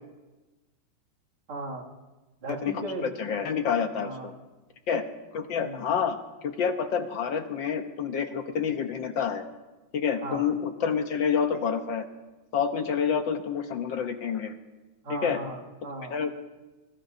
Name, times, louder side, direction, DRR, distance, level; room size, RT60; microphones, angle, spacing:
voice 1, 1.5-1.9 2.4-3.1 4.0-4.3 5.6-5.8 10.2-10.5 15.0-16.1, right 1 dB, 75° right, -2 dB, 3.3 m, -36 dB
voice 2, 3.2-4.3 4.9-5.0 5.3-9.4 9.9-12.0 12.5-14.5 15.1-15.4 16.1-16.3, left 7 dB, 65° left, 6 dB, 1.6 m, -28 dB
24.5 x 21.5 x 2.7 m, 1.1 s
omnidirectional pair, 2.4 m